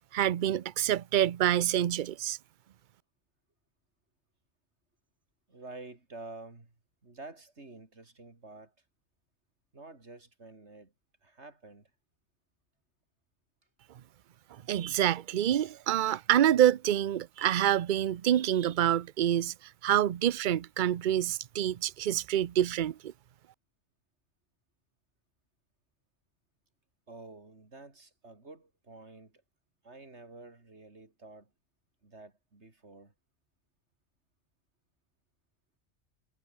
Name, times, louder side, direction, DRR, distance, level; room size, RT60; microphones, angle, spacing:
voice 1, 0.1-2.4 14.7-19.5 19.8-23.1, right 11 dB, 50° right, 0.7 m, -27 dB
voice 2, 5.5-6.8 7.0-8.7 9.7-10.9 11.2-11.9 27.1-29.4 29.8-31.5 32.0-33.1, right 3 dB, 70° right, 3.8 m, -49 dB
omnidirectional pair, 1.2 m